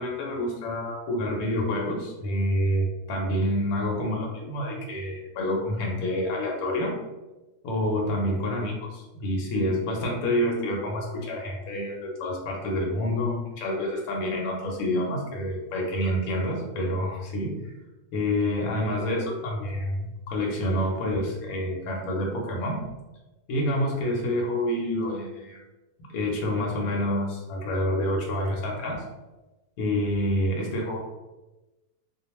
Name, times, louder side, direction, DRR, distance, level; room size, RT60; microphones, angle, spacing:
voice 1, 0.0-7.0 7.6-17.7 18.1-22.8 23.5-25.6 26.0-29.1 29.8-31.0, left 1 dB, 80° left, -2 dB, 1.1 m, -28 dB
2.3 x 2.2 x 2.9 m, 1.1 s
omnidirectional pair, 1.5 m